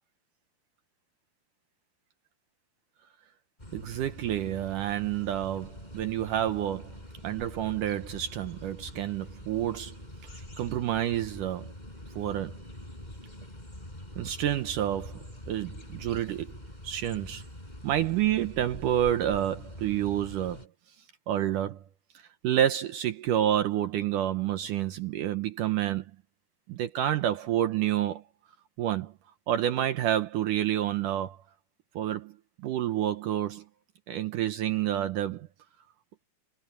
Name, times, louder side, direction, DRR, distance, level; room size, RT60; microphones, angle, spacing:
sound 1, 3.6-20.7, left 1 dB, 10° left, 6.3 m, -45 dB
voice 1, 3.7-6.9 7.2-10.0 10.6-11.7 12.2-12.6 14.2-16.6 16.8-17.4 17.8-20.7 21.3-21.8 22.4-26.0 26.7-28.2 28.8-29.1 29.5-31.4 32.0-32.3 32.6-33.6 34.1-35.5, right 11 dB, 75° right, 2.0 m, -29 dB
omnidirectional pair, 4.8 m